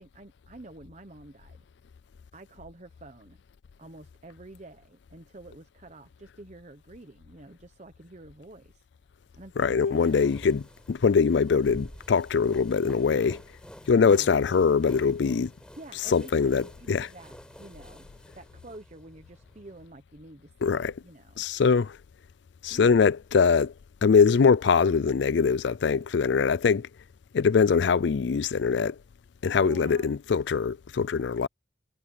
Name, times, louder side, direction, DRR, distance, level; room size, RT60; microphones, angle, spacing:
voice 1, 0.0-1.6 2.3-3.4 3.8-8.9 9.3-10.2 12.8-13.3 13.9-14.4 15.8-21.4 22.7-23.1 29.6-30.1, right 2 dB, 35° right, 0.9 m, -48 dB
voice 2, 9.6-13.4 13.9-15.5 16.1-17.1 20.6-20.9 21.4-22.0 22.6-23.7 24.0-26.9 27.3-29.0 29.4-31.5, left 5 dB, 65° left, 0.4 m, -23 dB
sound 1, 9.9-19.9, equal, 5° left, 5.4 m, -50 dB
head